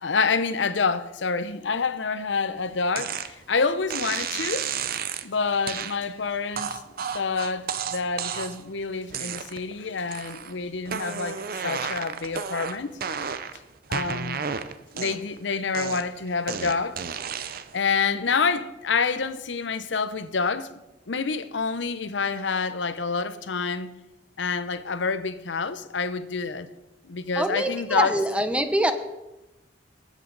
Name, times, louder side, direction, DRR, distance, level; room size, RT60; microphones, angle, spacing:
voice 1, 0.0-4.7 5.2-6.8 7.1-12.9 13.9-14.4 14.9-17.0 17.7-20.8 21.1-23.9 24.4-26.7 27.0-28.1, left 4 dB, 90° left, 0.8 m, -27 dB
sound 1, 3.0-3.3 3.9-5.3 5.7-6.0 6.6-8.7 9.1-9.7 10.1-10.5 10.9-13.6 13.9-15.4 15.7-17.8, right 7 dB, 55° right, 0.7 m, -32 dB
voice 2, 27.4-28.9, right 1 dB, 5° right, 0.8 m, -24 dB
19.5 x 8.2 x 4.0 m
head